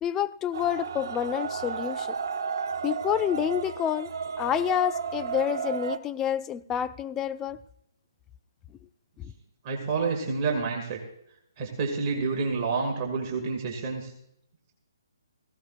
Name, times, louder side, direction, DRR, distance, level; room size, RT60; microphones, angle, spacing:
voice 1, 0.0-2.2 2.8-4.1 4.4-7.6 9.2-9.3, left 10 dB, 15° left, 14 dB, 0.4 m, -28 dB
sound 1, 0.5-6.0, right 6 dB, 55° right, 1.0 m, -33 dB
voice 2, 9.6-11.0 11.6-14.1, right 4 dB, 30° right, 1 dB, 2.1 m, -29 dB
18.0 x 16.0 x 2.5 m, 0.77 s
figure-of-eight pair, 145°, 2 cm